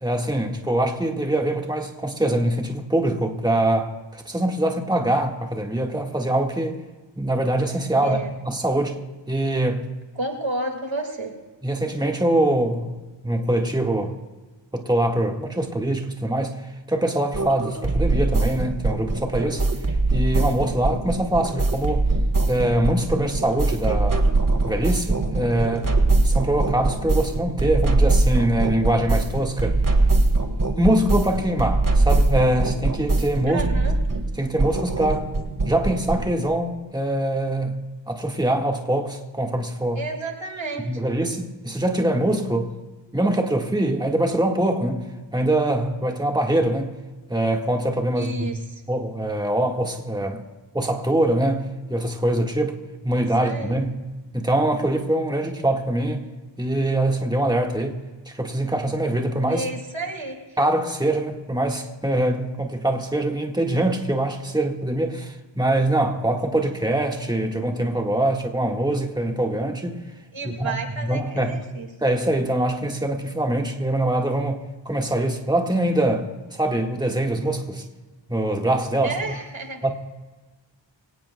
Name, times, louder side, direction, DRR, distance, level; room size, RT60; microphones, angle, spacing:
voice 1, 0.0-6.8 7.2-9.0 9.3-9.8 11.6-12.9 13.2-14.1 14.7-16.6 16.9-19.6 20.1-22.1 22.5-24.3 24.6-25.9 26.2-29.8 30.8-33.9 34.4-35.3 35.6-37.7 38.1-40.0 40.9-42.7 43.1-45.0 45.3-46.9 47.3-48.5 48.9-50.4 50.7-52.8 53.0-53.9 54.3-56.2 56.6-58.0 58.3-59.6 60.6-70.0 70.4-71.6 72.0-77.8 78.3-79.3 79.8-79.9, right 1 dB, 10° right, 2 dB, 1.6 m, -23 dB
voice 2, 7.9-8.3 10.1-11.4 33.5-34.0 40.0-41.0 48.2-48.8 53.1-53.8 59.5-60.6 70.3-71.9 79.0-79.8, right 2 dB, 80° right, 3 dB, 2.2 m, -31 dB
sound 1, 17.3-36.3, right 2 dB, 45° right, 1.8 m, -22 dB
24.5 x 17.5 x 2.3 m, 1.3 s
wide cardioid pair, 60°, 45 cm